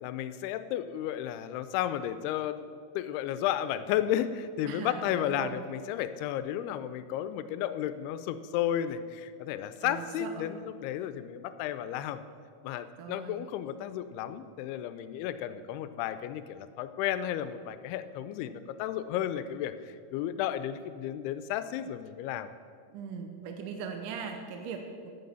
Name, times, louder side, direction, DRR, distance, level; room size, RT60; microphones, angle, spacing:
voice 1, 0.0-12.2 12.6-22.5, left 11 dB, 85° left, 12 dB, 2.6 m, -33 dB
voice 2, 4.7-5.6 9.8-10.5 13.0-13.4 22.9-25.1, right 6 dB, 75° right, 4 dB, 2.1 m, -40 dB
9.3 x 9.1 x 6.9 m, 2.2 s
omnidirectional pair, 4.5 m